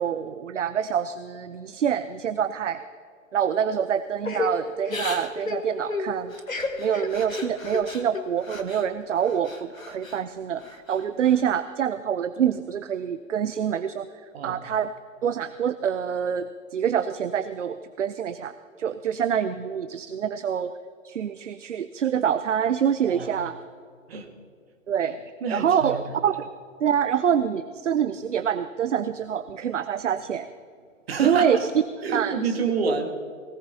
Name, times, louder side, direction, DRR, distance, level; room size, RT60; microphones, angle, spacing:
voice 1, 0.0-2.8 3.3-6.3 6.8-14.1 14.4-14.9 15.2-20.7 21.0-23.6 24.9-25.2 25.5-26.5 26.8-30.5 31.2-31.6 32.1-32.6, right 8 dB, 65° right, 13 dB, 0.6 m, -26 dB
Crying sobbing / Breathing, 4.2-8.9 9.2-10.2 10.6-11.4, left 3 dB, 80° left, 1.5 m, -33 dB
voice 2, 23.0-23.4 24.1-24.3 25.4-26.3 31.1-31.6 32.0-33.1, right 5 dB, 50° right, 4 dB, 1.7 m, -27 dB
18.5 x 17.5 x 2.8 m, 2.1 s
figure-of-eight pair, 120°, 40 cm